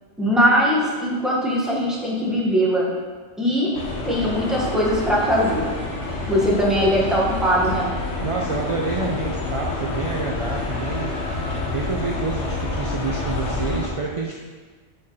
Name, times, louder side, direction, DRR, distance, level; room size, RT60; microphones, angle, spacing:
voice 1, 0.2-2.9 3.4-3.7 4.0-5.7 6.3-7.9, equal, ahead, -5 dB, 1.2 m, -20 dB
sound 1, 3.7-13.9, left 3 dB, 85° left, 1.4 m, -28 dB
voice 2, 8.2-11.2 11.7-14.4, right 3 dB, 50° right, -1 dB, 0.4 m, -28 dB
6.1 x 4.3 x 4.9 m, 1.5 s
omnidirectional pair, 1.2 m